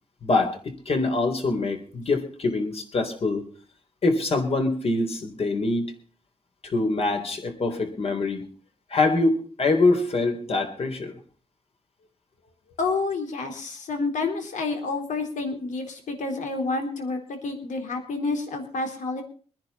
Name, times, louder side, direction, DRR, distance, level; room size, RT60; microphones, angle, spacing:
voice 1, 0.2-3.4 4.0-5.9 6.6-8.4 8.9-11.1, left 3 dB, 50° left, 4 dB, 3.8 m, -24 dB
voice 2, 12.8-19.2, left 3 dB, 85° left, 4 dB, 3.9 m, -29 dB
23.5 x 10.5 x 4.2 m, 0.42 s
wide cardioid pair, 120°, 12 cm